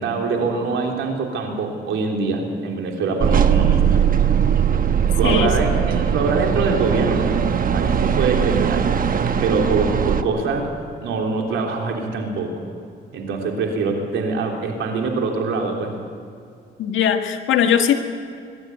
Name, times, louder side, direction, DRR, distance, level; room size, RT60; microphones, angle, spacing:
voice 1, 0.0-4.0 5.2-7.3 7.7-8.9 9.4-12.5 13.1-15.9, right 4 dB, 80° right, 1 dB, 3.6 m, -24 dB
sound 1, 3.2-10.2, right 8 dB, 45° right, 1.1 m, -19 dB
voice 2, 16.8-18.0, left 8 dB, 80° left, 5 dB, 1.7 m, -19 dB
22.5 x 12.5 x 9.4 m, 2.4 s
cardioid pair, 90°, 20 cm